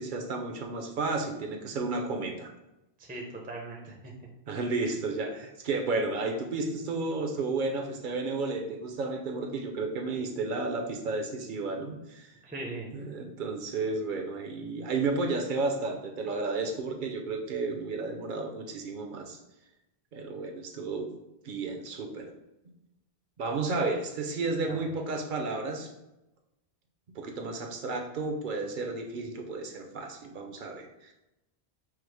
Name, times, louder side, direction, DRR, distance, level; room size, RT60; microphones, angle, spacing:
voice 1, 0.0-2.5 4.5-12.3 12.9-19.4 20.1-21.1 21.4-22.3 23.4-25.9 27.1-31.1, right 3 dB, 55° right, 4 dB, 0.7 m, -32 dB
voice 2, 3.0-4.1 12.4-12.9 24.7-24.9, right 2 dB, 10° right, -1 dB, 0.5 m, -40 dB
4.7 x 2.0 x 4.6 m, 0.93 s
omnidirectional pair, 1.1 m